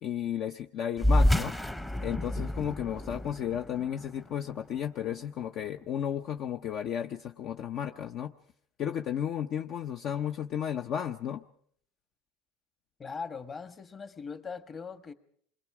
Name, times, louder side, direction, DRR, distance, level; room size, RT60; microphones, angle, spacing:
voice 1, 0.0-1.5 2.0-8.3 8.8-11.4, left 9 dB, 50° left, 0.8 m, -33 dB
sound 1, 1.0-5.9, left 1 dB, 5° left, 1.0 m, -29 dB
voice 2, 13.0-15.1, left 5 dB, 25° left, 1.5 m, -40 dB
28.0 x 22.0 x 4.9 m
supercardioid pair, 125°, 0 cm